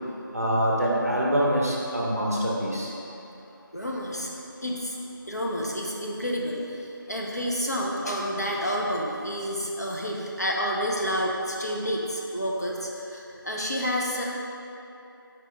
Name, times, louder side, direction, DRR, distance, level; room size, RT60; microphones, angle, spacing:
voice 1, 0.3-2.9, equal, 45° right, -4 dB, 0.6 m, -25 dB
voice 2, 3.7-4.3 4.6-5.0 5.3-14.3, equal, 50° left, -3 dB, 0.5 m, -29 dB
4.6 x 3.8 x 2.9 m, 2.8 s
figure-of-eight pair, 180°, 12 cm